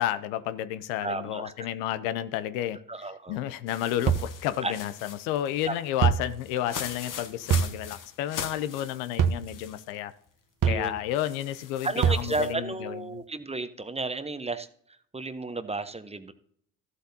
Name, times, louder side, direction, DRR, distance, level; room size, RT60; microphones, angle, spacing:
voice 1, 0.0-2.8 3.3-10.1 10.7-13.2, left 12 dB, 85° left, 14 dB, 0.6 m, -31 dB
voice 2, 1.0-1.5 2.9-3.4 4.6-4.7 5.7-5.8 10.6-11.0 11.8-14.7 15.1-16.3, right 3 dB, 15° right, 11 dB, 0.8 m, -32 dB
sound 1, 3.7-9.9 10.3-10.4 11.1-12.5, left 8 dB, 50° left, 1.2 m, -41 dB
sound 2, 4.1-4.3 6.0-6.3 7.5-7.7 9.2-9.4 10.6-10.9 12.0-12.3, right 7 dB, 50° right, 0.9 m, -23 dB
13.5 x 8.0 x 2.7 m, 0.65 s
hypercardioid pair, 55°, 40 cm